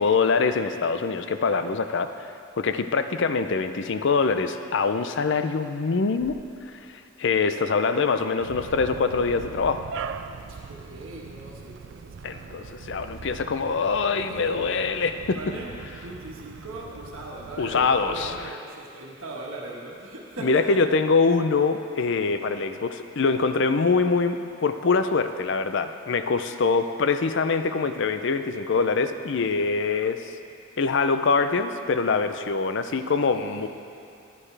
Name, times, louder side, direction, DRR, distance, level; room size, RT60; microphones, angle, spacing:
voice 1, 0.0-2.1 2.6-6.4 6.7-9.9 12.2-15.4 17.6-18.4 20.4-30.3 30.8-33.7, left 4 dB, 55° left, 9 dB, 0.5 m, -24 dB
sound 1, 8.4-18.5, right 5 dB, 55° right, 0.4 m, -41 dB
voice 2, 10.5-12.6 14.3-14.8 15.3-20.8 32.8-32.9 33.3-33.7, right 2 dB, 75° right, -3 dB, 1.5 m, -39 dB
14.5 x 11.0 x 3.3 m, 2.5 s
head